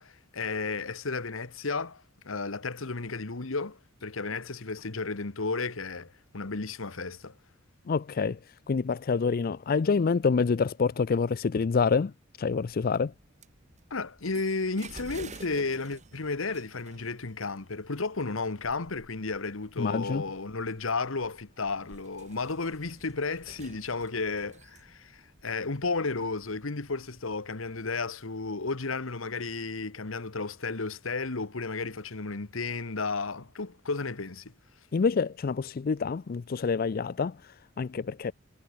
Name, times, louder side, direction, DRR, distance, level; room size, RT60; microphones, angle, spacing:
voice 1, 0.0-7.3 13.9-34.5, left 3 dB, 75° left, 1.3 m, -33 dB
voice 2, 7.9-12.1 12.4-13.1 19.8-20.2 34.9-38.3, left 5 dB, 45° left, 0.4 m, -27 dB
sound 1, 12.5-27.9, right 2 dB, 35° right, 3.9 m, -52 dB
head